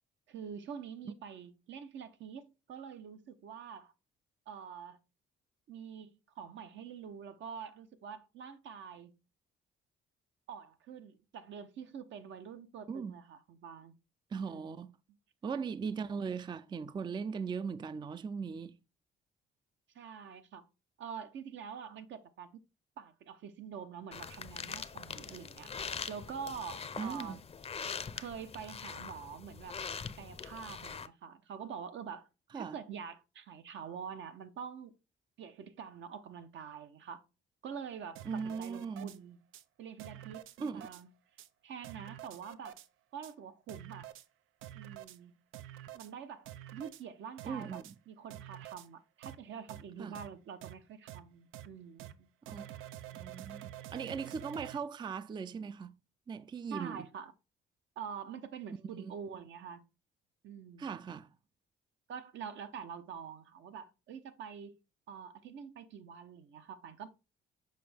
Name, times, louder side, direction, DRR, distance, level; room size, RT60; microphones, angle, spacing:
voice 1, 0.3-3.9 4.5-5.0 5.7-9.2 10.5-14.0 14.5-14.8 19.9-20.6 21.0-22.6 23.0-25.7 26.1-27.4 28.1-29.8 30.2-32.3 32.5-34.9 35.4-37.2 37.6-39.4 39.8-41.1 41.6-42.8 43.1-44.1 44.7-45.4 45.9-47.8 48.1-52.3 56.7-57.3 58.0-59.8 60.4-60.9 62.1-64.8 65.1-67.1, right 7 dB, 70° right, 0.8 m, -46 dB
voice 2, 14.3-14.9 15.4-18.8 27.0-27.4 32.5-32.8 38.3-39.2 40.6-40.9 47.4-48.0 50.0-50.2 52.5-52.6 53.1-55.9 56.3-57.1 58.7-59.1 60.8-61.3, right 5 dB, 25° right, 0.3 m, -39 dB
sound 1, 24.1-31.1, left 6 dB, 30° left, 0.5 m, -43 dB
sound 2, 38.2-39.2 39.5-39.6 40.0-41.0 41.4-41.5 41.8-42.9 43.2-43.3 43.7-44.3 44.6-45.2 45.5-46.1 46.5-47.0 47.4-47.9 48.3-48.9 49.2-49.4 49.7-49.8 50.2-50.3 50.6-50.7 51.1-51.2 51.5-51.7 52.0-52.1 52.5-54.8, right 13 dB, 90° right, 0.5 m, -48 dB
6.7 x 5.1 x 3.4 m
cardioid pair, 90°, 20 cm